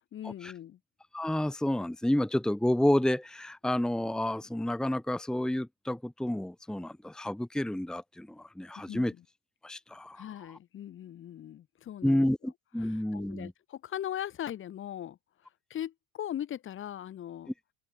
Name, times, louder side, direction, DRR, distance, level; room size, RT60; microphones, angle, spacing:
voice 1, 0.1-0.8 8.9-9.2 10.1-12.5 12.8-15.2 15.7-17.5, left 11 dB, 40° left, 2.1 m, -39 dB
voice 2, 1.1-9.1 9.6-10.3 12.0-13.5, left 1 dB, ahead, 1.3 m, -30 dB
open air
cardioid pair, 135°, 32 cm